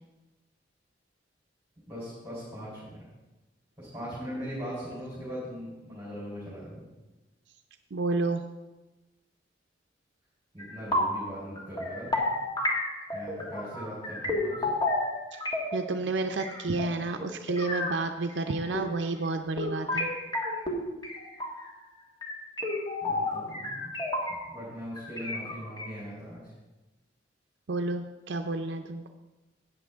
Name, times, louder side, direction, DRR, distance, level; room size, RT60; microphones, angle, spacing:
voice 1, 1.9-3.0 3.8-6.8 10.5-12.3 13.1-14.5 23.0-23.9 24.5-26.4, equal, 10° right, -9 dB, 4.1 m, -40 dB
voice 2, 7.9-8.4 15.3-15.4 15.7-20.1 27.7-29.1, right 3 dB, 75° right, 5 dB, 0.6 m, -30 dB
sound 1, 10.6-11.3 11.6-15.9 16.3-18.0 18.3-19.1 19.6-21.7 22.2-24.7 25.0-25.9, left 2 dB, 25° left, 1.5 m, -32 dB
14.0 x 9.0 x 3.5 m, 1.1 s
head